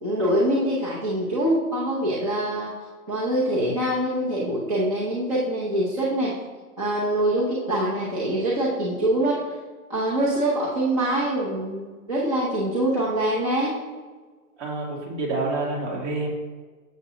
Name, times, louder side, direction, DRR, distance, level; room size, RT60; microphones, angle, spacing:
voice 1, 0.0-2.7 3.1-6.3 6.8-9.4 9.9-13.7, right 1 dB, 20° right, -7 dB, 0.7 m, -24 dB
voice 2, 14.6-16.3, right 2 dB, 45° right, -3 dB, 2.1 m, -28 dB
7.3 x 6.8 x 2.8 m, 1.4 s
hypercardioid pair, 170°, 47 cm